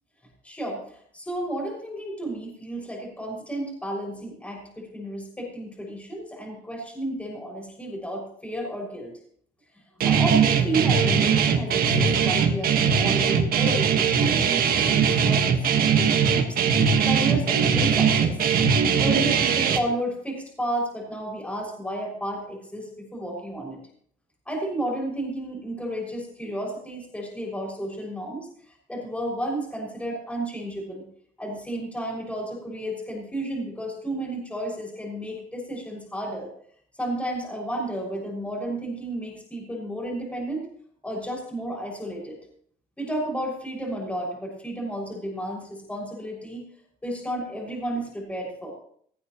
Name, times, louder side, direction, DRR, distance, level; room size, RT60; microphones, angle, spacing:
voice 1, 0.4-9.1 10.0-16.6 17.0-18.4 19.0-23.8 24.5-28.5 28.9-31.1 31.4-36.5 37.0-40.6 41.0-42.4 43.0-46.6 47.0-48.7, right 1 dB, 5° left, -1 dB, 6.4 m, -32 dB
Guitar, 10.0-19.8, right 6 dB, 60° right, 1.7 m, -21 dB
18.0 x 14.0 x 3.1 m, 0.62 s
cardioid pair, 110°, 17 cm